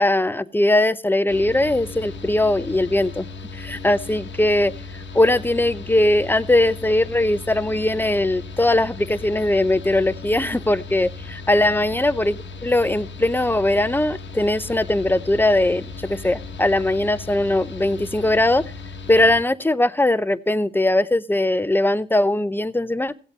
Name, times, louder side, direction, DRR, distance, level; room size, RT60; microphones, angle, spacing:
voice 1, 0.0-3.3 3.5-18.6 19.1-23.1, left 1 dB, 10° left, 15 dB, 0.7 m, -20 dB
Mechanical fan, 1.3-19.4, left 4 dB, 80° left, 1.2 m, -36 dB
15.5 x 8.0 x 5.3 m, 0.39 s
supercardioid pair, 45°, 19 cm